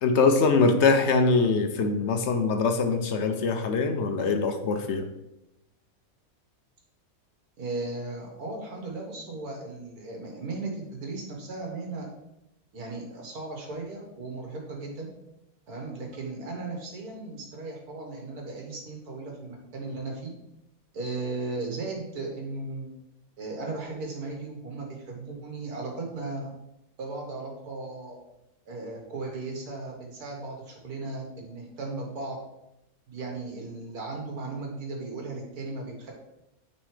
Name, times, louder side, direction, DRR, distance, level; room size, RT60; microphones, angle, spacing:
voice 1, 0.0-5.1, left 4 dB, 60° left, 6 dB, 0.8 m, -23 dB
voice 2, 7.6-12.1 12.7-15.1 15.7-20.3 20.9-22.9 23.4-26.5 27.0-28.2 28.7-32.4 33.1-36.1, right 3 dB, 85° right, 0 dB, 1.9 m, -36 dB
9.2 x 4.1 x 3.2 m, 0.87 s
omnidirectional pair, 1.6 m